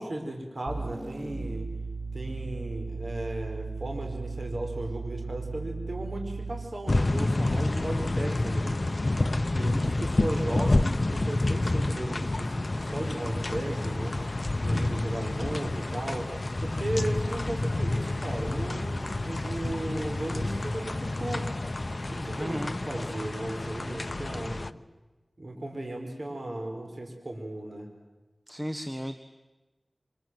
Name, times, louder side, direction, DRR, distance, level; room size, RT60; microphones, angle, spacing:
voice 1, 0.0-1.7 2.1-8.8 9.5-14.2 14.6-16.3 16.6-21.5 22.1-24.7 25.4-27.9, right 1 dB, 65° right, 2 dB, 4.8 m, -36 dB
sound 1, 0.7-6.8, right 3 dB, 30° right, 2.6 m, -36 dB
sound 2, 6.9-24.7, left 2 dB, 50° left, 0.8 m, -29 dB
voice 2, 9.7-10.1 22.4-22.8 28.5-29.2, equal, 10° right, 8 dB, 1.4 m, -35 dB
sound 3, 13.0-22.4, right 2 dB, 90° right, 4.1 m, -50 dB
27.5 x 25.0 x 7.9 m, 1.1 s
wide cardioid pair, 55°, 0 cm